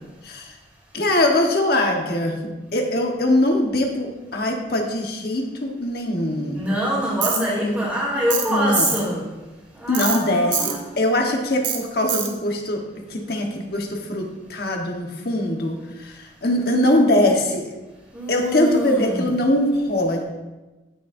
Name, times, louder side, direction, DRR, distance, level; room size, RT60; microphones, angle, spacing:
voice 1, 0.9-2.4 2.7-6.6 7.3-7.9 8.5-8.9 9.9-12.8 13.1-15.8 16.0-17.6 18.3-20.2, left 1 dB, 55° left, 2 dB, 1.3 m, -22 dB
voice 2, 6.5-9.2 9.7-10.8 18.1-19.2, equal, 10° right, -7 dB, 3.1 m, -25 dB
Tools, 7.2-7.4 8.3-8.5 8.8-9.0 9.9-10.2 10.5-10.7 11.6-11.8 12.1-12.3, right 9 dB, 80° right, 1.1 m, -24 dB
16.0 x 6.3 x 2.7 m, 1.1 s
head